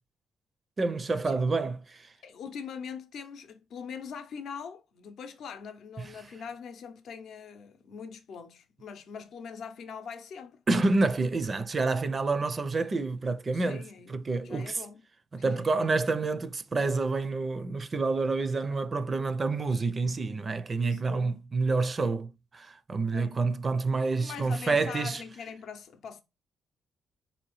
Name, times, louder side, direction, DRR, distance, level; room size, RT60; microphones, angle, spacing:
voice 1, 0.8-2.1 10.7-14.8 15.3-25.2, right 3 dB, 35° right, 0.4 m, -28 dB
voice 2, 2.2-10.6 13.5-14.2 14.4-15.0 15.3-15.7 20.9-21.4 23.1-23.4 24.1-26.2, left 6 dB, 70° left, 0.6 m, -42 dB
4.1 x 2.8 x 3.0 m
cardioid pair, 90°, 0 cm